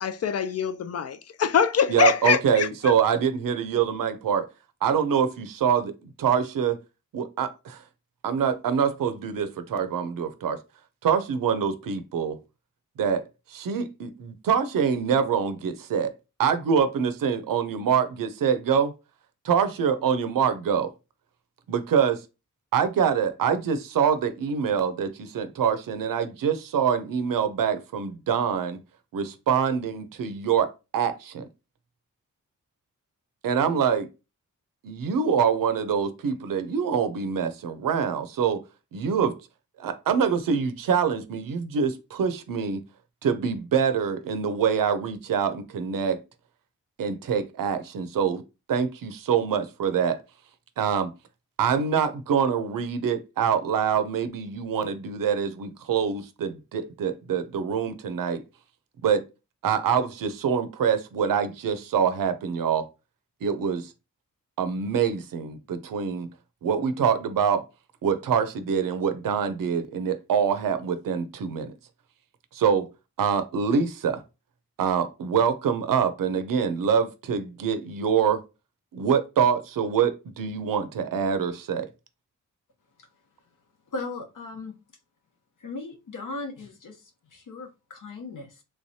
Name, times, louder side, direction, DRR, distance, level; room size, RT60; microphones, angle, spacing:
voice 1, 0.0-2.9, left 7 dB, 50° left, 0.4 m, -24 dB
voice 2, 1.9-4.5 4.8-6.8 7.1-7.8 8.2-10.6 11.0-12.4 13.0-16.1 16.4-18.9 19.4-20.9 21.7-22.2 22.7-28.8 29.1-31.5 33.4-34.1 34.8-38.6 38.9-39.4 39.8-42.8 43.2-46.2 47.0-48.4 48.7-50.2 50.8-51.1 51.6-58.4 59.0-59.2 59.6-62.9 63.4-63.9 64.6-66.3 66.6-67.6 68.0-71.7 72.5-72.9 73.2-74.2 74.8-78.4 78.9-81.9, right 7 dB, 90° right, 0.6 m, -25 dB
voice 3, 83.9-84.8 85.6-88.6, left 3 dB, 70° left, 0.9 m, -37 dB
3.4 x 3.1 x 2.7 m
wide cardioid pair, 155°, 32 cm